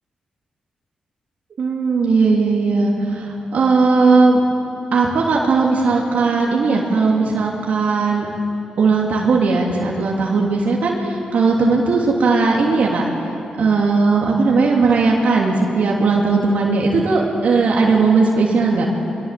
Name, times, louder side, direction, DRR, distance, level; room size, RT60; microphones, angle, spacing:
voice 1, 1.6-4.4 4.9-8.3 8.8-13.0 13.6-18.9, right 4 dB, 70° right, -2 dB, 3.0 m, -17 dB
23.5 x 22.5 x 7.7 m, 2.8 s
cardioid pair, 55°, 3 cm